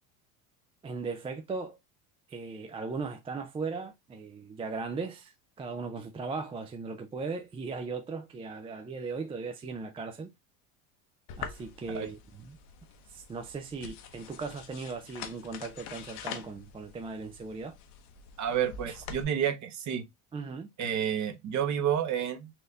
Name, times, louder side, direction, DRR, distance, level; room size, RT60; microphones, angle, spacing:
voice 1, 0.8-1.8 2.3-10.3 11.4-12.6 13.1-17.8 18.9-19.0 20.3-20.7, right 4 dB, 15° right, 0.4 m, -38 dB
sound 1, 11.3-19.2, left 7 dB, 65° left, 1.0 m, -45 dB
voice 2, 18.4-20.0 20.8-22.5, right 9 dB, 40° right, 1.0 m, -30 dB
4.3 x 2.6 x 3.3 m
supercardioid pair, 110°, 42 cm